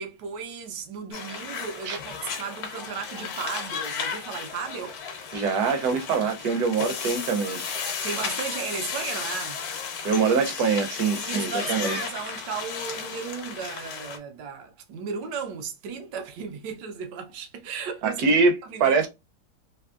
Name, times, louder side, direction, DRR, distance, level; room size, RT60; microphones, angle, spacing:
voice 1, 0.0-5.0 8.0-9.6 11.1-19.1, right 6 dB, 85° right, 1.3 m, -35 dB
sound 1, 1.1-14.2, left 6 dB, 70° left, 1.1 m, -34 dB
voice 2, 5.3-7.6 10.0-12.0 18.0-19.1, right 5 dB, 70° right, 1.2 m, -24 dB
3.4 x 2.7 x 2.4 m
omnidirectional pair, 1.9 m